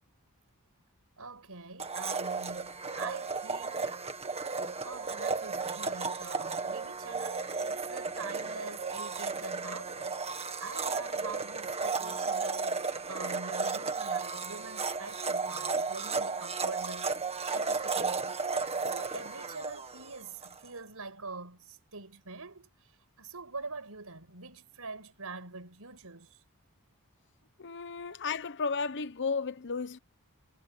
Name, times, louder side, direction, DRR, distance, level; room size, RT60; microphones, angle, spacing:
voice 1, 1.2-4.0 4.8-10.2 10.6-12.8 13.1-18.4 18.9-22.7 23.2-26.4 28.0-28.2, right 4 dB, 75° right, 5.9 m, -44 dB
Domestic sounds home sounds, 1.8-20.6, right 4 dB, 30° right, 1.8 m, -34 dB
voice 2, 27.6-30.0, left 5 dB, 55° left, 1.0 m, -33 dB
head